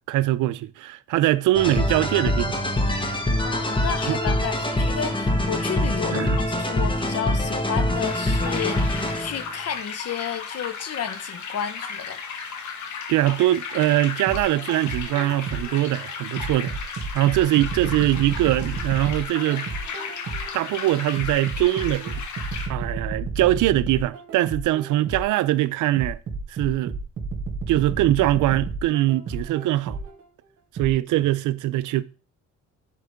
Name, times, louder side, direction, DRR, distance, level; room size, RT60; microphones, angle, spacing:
voice 1, 0.1-2.6 4.1-4.2 6.1-6.4 13.1-16.8 17.1-19.7 20.5-22.2 22.7-26.2 26.5-27.0 27.7-30.0 30.7-32.0, right 15 dB, 80° right, 0.5 m, -22 dB
sound 1, 1.5-9.5, left 1 dB, 15° left, 1.4 m, -24 dB
voice 2, 3.4-12.2, left 8 dB, 55° left, 1.0 m, -32 dB
sound 2, 8.0-22.7, left 5 dB, 70° left, 1.7 m, -35 dB
sound 3, 14.3-15.8 16.4-20.6 21.2-25.4 26.0-30.2 30.8-30.9, right 3 dB, 50° right, 2.8 m, -32 dB
10.0 x 4.7 x 3.5 m
cardioid pair, 90°, 30 cm